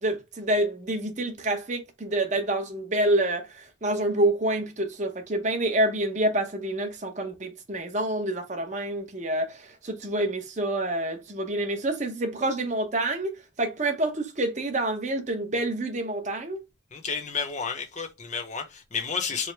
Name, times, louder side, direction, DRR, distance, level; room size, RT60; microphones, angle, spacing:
voice 1, 0.0-16.6, right 1 dB, 35° right, 0.8 m, -27 dB
voice 2, 16.9-19.5, left 5 dB, 35° left, 0.7 m, -31 dB
4.6 x 2.0 x 3.3 m
head